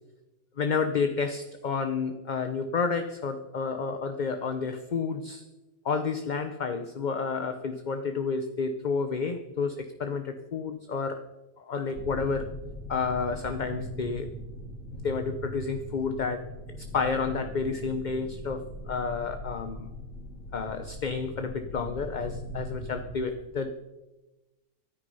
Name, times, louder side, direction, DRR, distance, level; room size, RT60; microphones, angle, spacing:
voice 1, 0.6-5.4 5.8-11.2 11.6-12.5 12.9-14.3 14.9-16.5 16.9-19.9 20.5-23.7, left 5 dB, 40° left, 8 dB, 0.8 m, -30 dB
sound 1, 11.9-23.2, equal, 60° left, 2.5 m, -40 dB
24.0 x 9.6 x 5.5 m, 1.1 s
omnidirectional pair, 1.5 m